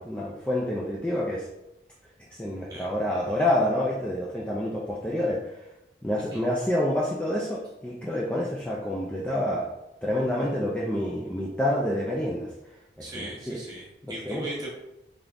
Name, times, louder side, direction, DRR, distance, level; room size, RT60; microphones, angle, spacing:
voice 1, 0.0-1.5 2.3-5.5 6.0-9.7 10.0-12.5 13.0-13.6 14.0-14.4, left 1 dB, 5° left, -5 dB, 0.3 m, -28 dB
voice 2, 13.0-14.7, right 1 dB, 20° right, -4 dB, 0.9 m, -38 dB
3.7 x 3.4 x 2.5 m, 0.91 s
head